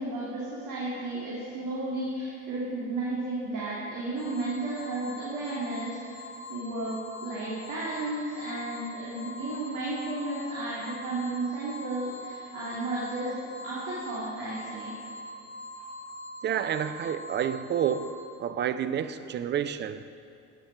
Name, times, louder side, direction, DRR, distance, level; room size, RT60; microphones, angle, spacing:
voice 1, 0.0-6.2 6.5-13.4 13.6-15.0, right 2 dB, 45° right, -7 dB, 2.6 m, -33 dB
sound 1, 4.2-18.2, left 1 dB, 30° left, 2.8 m, -43 dB
voice 2, 16.4-20.0, right 9 dB, 25° right, 12 dB, 0.5 m, -29 dB
11.5 x 8.2 x 4.6 m, 2.4 s
hypercardioid pair, 70°, 45 cm